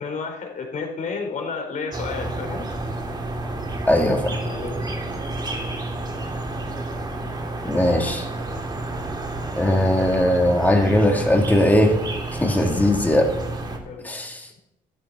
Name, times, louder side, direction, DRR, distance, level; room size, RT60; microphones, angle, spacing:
voice 1, 0.0-2.7 4.4-5.1 12.6-13.0 13.8-14.1, left 5 dB, 50° left, 2 dB, 4.3 m, -32 dB
sound 1, 1.9-13.8, right 2 dB, 25° right, 3.0 m, -30 dB
voice 2, 3.9-4.4 7.6-8.3 9.5-12.0 12.4-13.2 14.0-14.4, left 1 dB, 10° left, 2 dB, 2.7 m, -19 dB
14.0 x 12.5 x 4.3 m, 0.82 s
cardioid pair, 110°, 17 cm